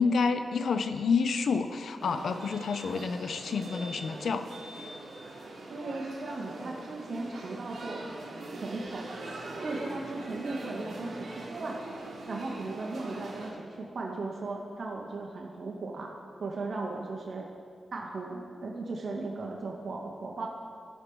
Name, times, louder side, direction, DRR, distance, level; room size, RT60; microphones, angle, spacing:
voice 1, 0.0-4.4, left 5 dB, 75° left, 9 dB, 0.5 m, -28 dB
sound 1, 2.0-13.5, right 2 dB, 75° right, 1.4 m, -42 dB
voice 2, 5.7-8.1 8.5-9.1 9.6-11.8 12.3-16.1 16.4-17.5 17.9-20.5, right 3 dB, 55° right, 0 dB, 0.8 m, -37 dB
12.0 x 4.4 x 5.3 m, 2.1 s
wide cardioid pair, 115°, 0 cm